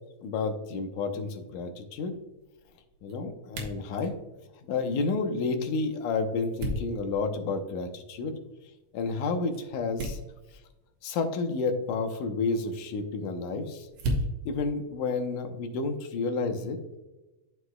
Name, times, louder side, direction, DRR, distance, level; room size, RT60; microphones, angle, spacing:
voice 1, 0.2-2.2 3.0-4.1 4.7-8.3 8.9-10.2 11.0-13.9 14.5-16.8, left 4 dB, 90° left, 5 dB, 2.5 m, -30 dB
sound 1, 1.0-15.9, equal, 80° right, 2.7 m, -40 dB
13.0 x 4.7 x 2.2 m, 1.0 s
omnidirectional pair, 3.6 m